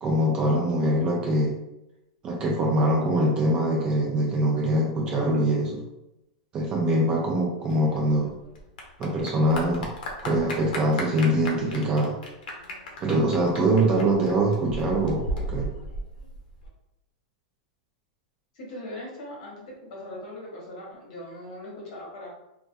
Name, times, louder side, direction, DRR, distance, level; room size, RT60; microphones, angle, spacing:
voice 1, 0.0-1.6 2.2-5.8 6.5-8.4 9.0-9.9 10.2-12.2 13.0-15.7, right 1 dB, 20° right, -2 dB, 0.4 m, -23 dB
Clapping / Applause, 7.7-16.7, equal, 80° left, 0.6 m, -36 dB
voice 2, 18.5-22.3, left 1 dB, 55° left, -4 dB, 1.0 m, -40 dB
2.3 x 2.2 x 2.5 m, 0.89 s
supercardioid pair, 165°, 4 cm